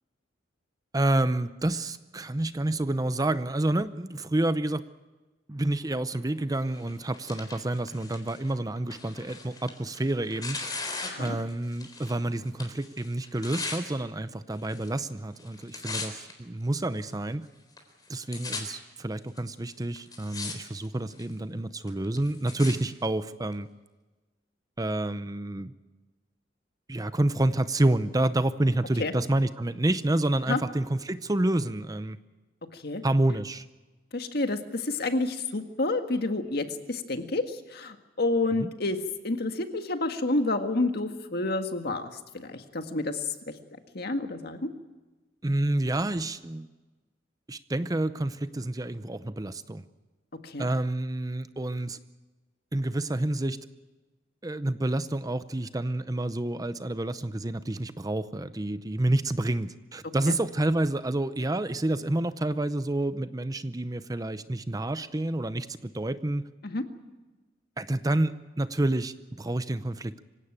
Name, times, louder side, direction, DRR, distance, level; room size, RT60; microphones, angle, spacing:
voice 1, 0.9-4.8 5.5-10.7 11.2-17.5 18.1-23.7 24.8-25.7 26.9-32.2 33.0-33.7 38.6-38.7 45.4-46.7 47.5-49.9 50.6-52.0 52.7-53.6 54.4-66.4 67.8-70.2, right 1 dB, 20° right, 13 dB, 0.7 m, -28 dB
Tearing, 6.7-12.2 12.5-13.8 14.6-15.1 15.4-16.3 17.0-17.1 17.8-17.9 18.0-18.6 19.4-19.5 20.0-20.5 20.8-21.3 21.9-22.7 23.5-23.6, left 3 dB, 20° left, 3.9 m, -38 dB
voice 2, 11.0-11.4 29.0-29.1 30.5-30.6 32.7-33.0 34.1-39.0 39.2-43.3 43.9-44.7 50.4-50.7 66.6-66.8, left 2 dB, 55° left, 6 dB, 1.8 m, -29 dB
25.5 x 16.5 x 9.0 m, 1.2 s
head